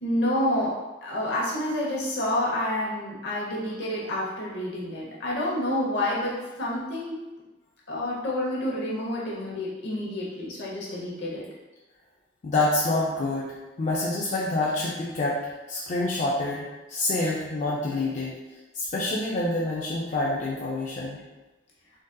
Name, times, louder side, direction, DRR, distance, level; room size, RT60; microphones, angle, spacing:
voice 1, 0.0-0.7 1.0-7.1 7.9-11.4, left 1 dB, 65° left, -5 dB, 0.9 m, -28 dB
voice 2, 12.4-13.5 13.8-15.4 15.7-18.3 18.7-21.2, left 2 dB, 40° left, -6 dB, 0.4 m, -27 dB
3.8 x 2.5 x 2.2 m, 1.1 s
head